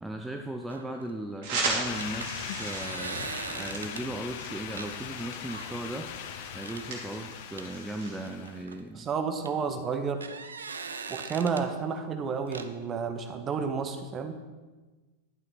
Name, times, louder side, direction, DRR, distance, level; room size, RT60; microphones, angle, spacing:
voice 1, 0.0-6.1 6.5-9.1, right 1 dB, 5° right, 4 dB, 0.6 m, -37 dB
sound 1, 0.7-1.1 2.0-4.1 4.8-4.9 5.5-5.8 6.6-7.0 7.6-9.1 9.4-9.5 10.0-11.6 12.5-12.7, right 5 dB, 70° right, 0.5 m, -40 dB
sound 2, 1.4-8.2, right 3 dB, 50° right, 2.7 m, -37 dB
sound 3, 1.8-8.6, left 9 dB, 50° left, 0.6 m, -40 dB
voice 2, 8.9-10.2 11.1-14.4, right 5 dB, 25° right, 7 dB, 1.0 m, -31 dB
11.0 x 8.9 x 4.1 m, 1.2 s
figure-of-eight pair, 90°, 0 cm